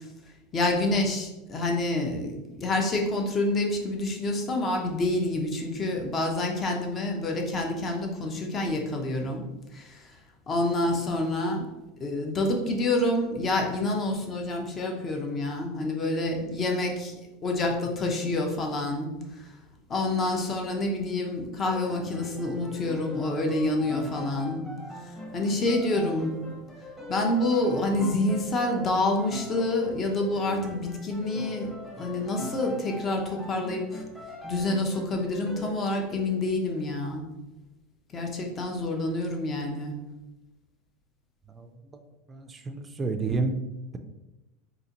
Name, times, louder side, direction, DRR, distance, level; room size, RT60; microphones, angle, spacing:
voice 1, 0.5-9.5 9.7-10.0 10.5-11.7 12.0-19.1 19.9-24.7 25.3-26.3 27.1-31.7 32.0-34.0 34.5-37.3 38.1-39.9, left 2 dB, 30° left, 2 dB, 0.7 m, -27 dB
sound 1, 21.6-35.7, left 2 dB, 5° left, 0.9 m, -41 dB
voice 2, 42.3-43.6, right 3 dB, 20° right, 6 dB, 0.4 m, -30 dB
3.9 x 2.8 x 2.9 m, 1.0 s
supercardioid pair, 125°, 0 cm